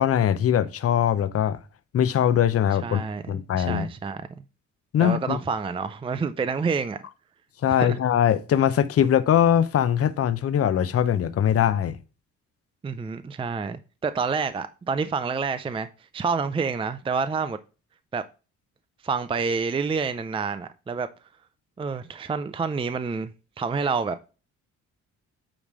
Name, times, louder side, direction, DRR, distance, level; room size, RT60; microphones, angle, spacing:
voice 1, 0.0-1.6 1.9-3.0 3.3-3.9 4.9-5.4 7.6-12.0, left 9 dB, 50° left, 0.7 m, -21 dB
voice 2, 2.8-4.2 5.0-7.0 7.8-8.0 12.8-15.9 16.1-17.6 18.1-18.2 19.0-21.1 21.8-23.3 23.6-24.3, right 5 dB, 20° right, 0.4 m, -28 dB
8.7 x 3.2 x 5.0 m
cardioid pair, 90°, 30 cm